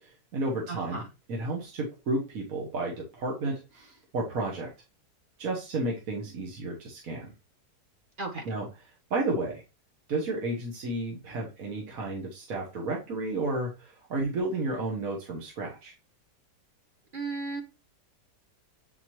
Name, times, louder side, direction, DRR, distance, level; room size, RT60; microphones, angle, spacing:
voice 1, 0.0-1.0 1.3-4.7 5.4-7.3 8.4-8.7 9.1-9.6 10.1-15.9, right 2 dB, 55° right, -1 dB, 1.5 m, -32 dB
voice 2, 0.7-1.1 8.2-8.6 17.1-17.6, right 3 dB, 35° right, 1 dB, 1.2 m, -35 dB
8.4 x 4.0 x 3.0 m, 0.28 s
omnidirectional pair, 1.8 m